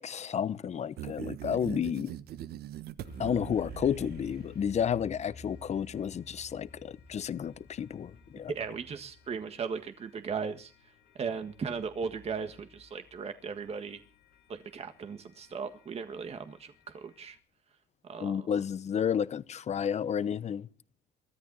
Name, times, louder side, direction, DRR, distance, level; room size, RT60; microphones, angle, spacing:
voice 1, 0.0-2.1 3.2-8.5 18.2-20.7, left 8 dB, 40° left, 1.0 m, -31 dB
sound 1, 1.0-4.7, right 11 dB, 70° right, 1.2 m, -42 dB
sound 2, 3.0-17.4, left 3 dB, 70° left, 3.4 m, -54 dB
voice 2, 8.5-14.0 14.5-17.4 18.0-18.5, right 5 dB, 40° right, 1.7 m, -37 dB
24.0 x 13.5 x 4.1 m
cardioid pair, 110°, 17 cm